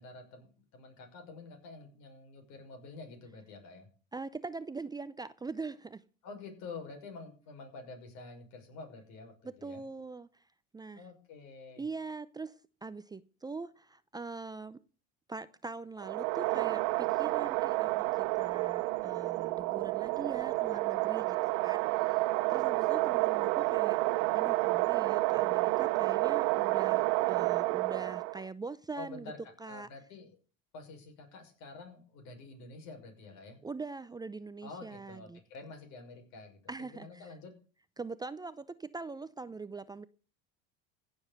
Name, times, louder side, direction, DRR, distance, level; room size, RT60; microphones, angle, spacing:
voice 1, 0.0-3.9 6.2-9.8 10.9-11.8 28.9-30.4 30.7-33.6 34.6-36.7 37.0-37.5, left 3 dB, 65° left, 4 dB, 6.2 m, -48 dB
voice 2, 4.1-6.0 9.4-10.5 10.7-11.0 11.8-14.8 15.3-21.4 21.6-24.0 24.3-27.0 27.3-29.3 29.6-29.9 33.6-35.4 36.7-37.3 38.0-40.1, right 4 dB, 15° right, 14 dB, 0.6 m, -42 dB
sound 1, 16.0-28.5, right 21 dB, 70° right, 0.9 m, -30 dB
16.0 x 7.2 x 6.6 m, 0.38 s
supercardioid pair, 100°, 31 cm